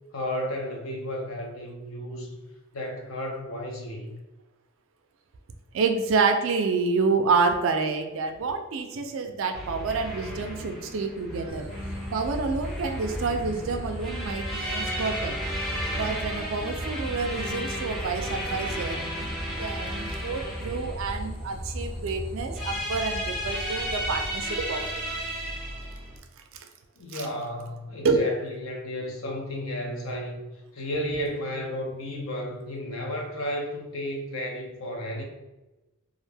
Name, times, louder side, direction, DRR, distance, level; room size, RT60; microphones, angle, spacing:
voice 1, 0.1-2.3 2.7-4.1 27.0-35.2, equal, 75° left, 0 dB, 0.6 m, -33 dB
voice 2, 5.7-11.7 12.1-15.4 15.9-19.0 19.5-25.0 27.1-27.3 28.0-28.3, right 4 dB, 70° right, 6 dB, 0.4 m, -28 dB
sound 1, 9.5-26.2, equal, ahead, 0.6 m, -34 dB
sound 2, 11.5-24.3, equal, 40° left, 1.0 m, -37 dB
2.4 x 2.1 x 3.3 m, 1.0 s
head